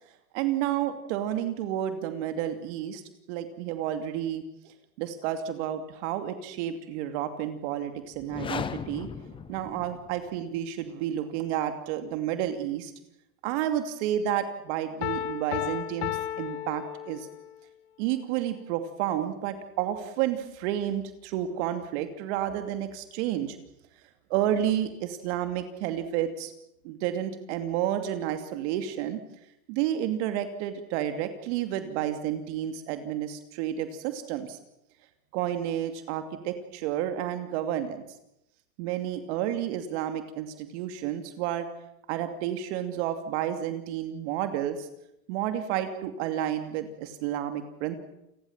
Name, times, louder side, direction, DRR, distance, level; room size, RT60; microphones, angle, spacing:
voice 1, 0.3-3.0 3.3-9.1 9.5-12.9 13.4-16.1 16.4-17.3 18.0-23.6 24.3-26.5 26.8-29.2 29.7-34.6 35.3-38.0 38.8-41.7 42.1-44.9 45.3-48.0, right 11 dB, 50° right, 8 dB, 2.7 m, -31 dB
sound 1, 8.1-10.3, left 7 dB, 10° left, 0.8 m, -37 dB
Piano, 15.0-17.6, left 13 dB, 50° left, 1.4 m, -33 dB
29.0 x 19.0 x 7.4 m, 0.82 s
supercardioid pair, 145°, 44 cm